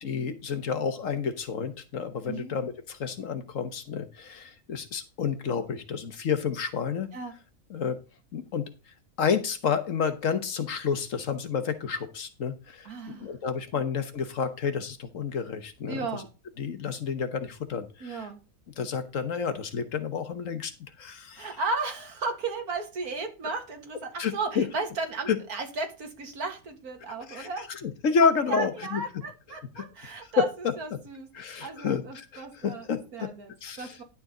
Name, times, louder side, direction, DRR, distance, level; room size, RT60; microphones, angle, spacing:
voice 1, 0.0-7.1 7.7-8.0 8.3-8.7 9.2-16.2 16.6-18.3 18.8-20.7 21.0-21.6 24.2-24.6 25.3-25.4 27.1-29.0 29.8-30.7 31.3-33.3 33.6-34.0, left 6 dB, 60° left, 1.4 m, -30 dB
voice 2, 12.9-13.3 15.9-16.3 18.0-18.4 21.4-27.7 28.5-30.5 30.8-33.5 33.8-34.0, right 4 dB, 90° right, 2.3 m, -35 dB
11.0 x 7.3 x 3.9 m
omnidirectional pair, 1.5 m